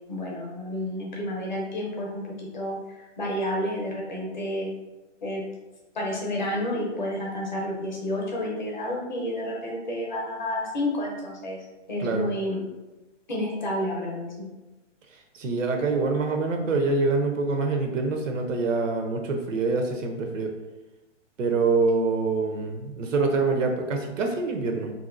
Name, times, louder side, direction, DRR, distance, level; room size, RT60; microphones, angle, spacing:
voice 1, 0.1-2.8 3.2-4.7 5.2-5.4 5.9-11.6 11.9-12.6 13.3-14.5, left 1 dB, 40° left, -2 dB, 0.7 m, -30 dB
voice 2, 15.3-20.5 21.4-24.9, right 3 dB, 85° right, 4 dB, 0.8 m, -25 dB
2.9 x 2.7 x 2.4 m, 1.1 s
hypercardioid pair, 175°, 37 cm